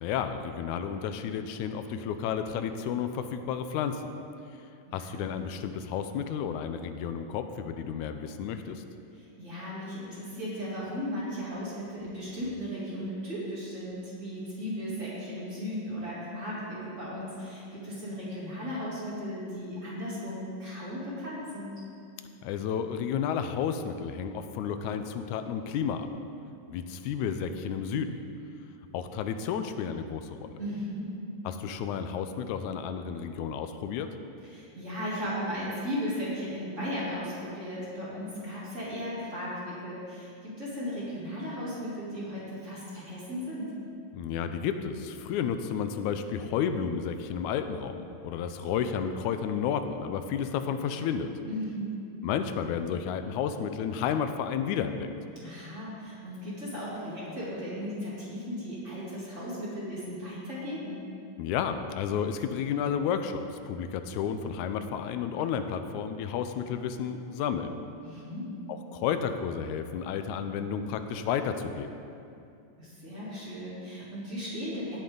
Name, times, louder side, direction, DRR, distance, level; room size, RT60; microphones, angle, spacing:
voice 1, 0.0-4.0 4.9-8.8 22.4-26.1 26.7-28.2 28.9-30.6 31.5-34.1 44.1-51.3 52.2-55.1 61.4-67.7 68.9-71.9, left 7 dB, 90° left, 9 dB, 2.0 m, -31 dB
voice 2, 4.9-5.3 9.1-21.7 30.6-31.2 34.4-43.7 51.5-52.0 55.4-61.0 68.0-68.5 72.8-75.0, equal, 25° right, -9 dB, 3.1 m, -36 dB
17.5 x 7.6 x 3.9 m, 2.6 s
omnidirectional pair, 3.4 m